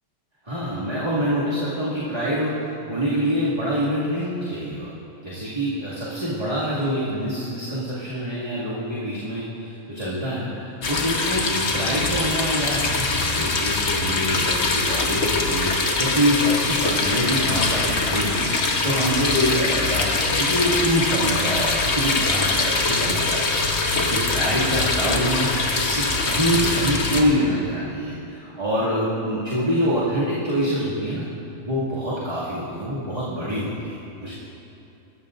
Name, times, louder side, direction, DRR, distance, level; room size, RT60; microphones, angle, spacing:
voice 1, 0.4-4.9 5.2-31.3 31.6-33.9 34.2-34.5, equal, 30° right, -10 dB, 2.4 m, -25 dB
sound 1, 10.8-27.2, left 3 dB, 65° left, 1.4 m, -23 dB
20.5 x 14.5 x 2.6 m, 2.9 s
omnidirectional pair, 1.3 m